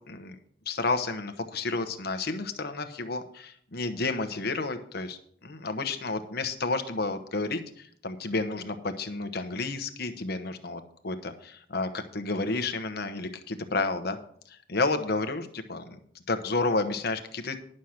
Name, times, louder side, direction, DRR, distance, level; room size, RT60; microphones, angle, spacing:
voice 1, 0.7-14.2 14.5-16.0 16.3-17.6, left 3 dB, 60° left, 8 dB, 1.1 m, -31 dB
11.0 x 6.5 x 5.8 m, 0.62 s
head